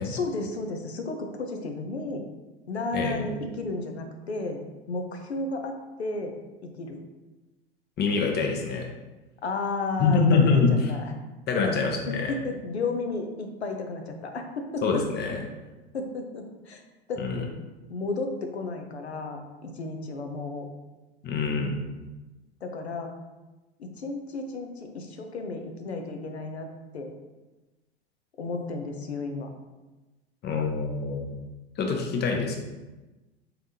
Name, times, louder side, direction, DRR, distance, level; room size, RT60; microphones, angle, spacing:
voice 1, 0.0-2.2 2.7-4.6 4.9-6.3 6.6-7.0 9.4-10.6 10.9-11.1 11.5-15.0 15.9-16.8 17.1-17.5 17.9-20.7 22.6-23.1 23.8-26.7 26.9-27.1 28.4-29.5, left 3 dB, 90° left, 4 dB, 0.6 m, -33 dB
voice 2, 2.9-3.2 8.0-8.9 10.0-10.7 11.5-12.3 14.8-15.4 17.2-17.4 21.2-21.8 30.4-31.3 31.8-32.6, left 4 dB, 30° left, 2 dB, 0.7 m, -25 dB
3.9 x 3.4 x 2.7 m, 1.1 s
hypercardioid pair, 90°, 32 cm